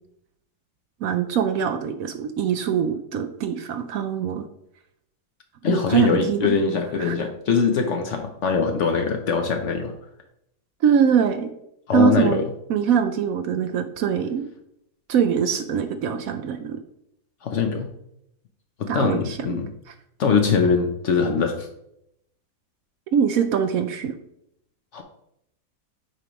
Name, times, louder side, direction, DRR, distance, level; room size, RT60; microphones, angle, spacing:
voice 1, 1.0-4.4 5.7-6.6 7.0-7.2 10.8-11.5 11.9-12.4 12.7-14.4 15.1-16.8 18.9-19.6 23.1-24.1, right 7 dB, 70° right, 8 dB, 0.9 m, -23 dB
voice 2, 5.6-9.9 11.9-12.4 17.4-17.9 18.8-19.7 20.2-21.7 24.9-25.0, left 5 dB, 60° left, 4 dB, 0.9 m, -22 dB
7.6 x 4.8 x 3.0 m, 0.77 s
omnidirectional pair, 1.7 m